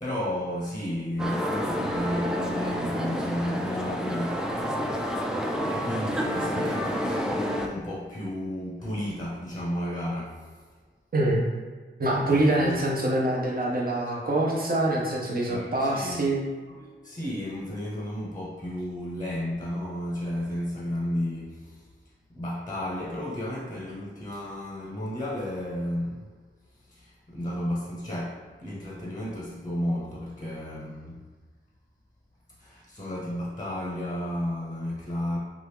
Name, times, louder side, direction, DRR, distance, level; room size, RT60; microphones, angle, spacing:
voice 1, 0.0-5.1 5.6-10.5 12.3-12.8 15.4-16.2 16.7-21.9 22.3-26.3 26.9-31.2 32.6-35.4, left 1 dB, 15° left, -5 dB, 0.7 m, -33 dB
sound 1, 1.2-7.7, equal, 5° right, 0.3 m, -29 dB
voice 2, 12.0-16.4, right 1 dB, 45° right, -3 dB, 0.8 m, -25 dB
2.9 x 2.4 x 3.4 m, 1.4 s
wide cardioid pair, 65°, 21 cm